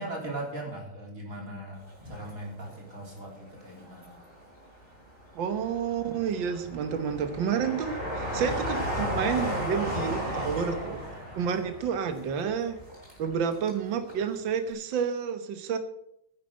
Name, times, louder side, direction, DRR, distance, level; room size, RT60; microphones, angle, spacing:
voice 1, 0.0-4.2, right 1 dB, 40° right, 0 dB, 3.9 m, -39 dB
Train, 1.9-3.1 3.6-4.5 5.1-13.8 14.1-14.2, equal, 20° right, 5.4 m, -34 dB
voice 2, 5.4-11.0 11.4-12.8 13.2-15.8, right 7 dB, 70° right, 8 dB, 1.9 m, -30 dB
10.5 x 9.1 x 7.8 m, 0.78 s
omnidirectional pair, 2.2 m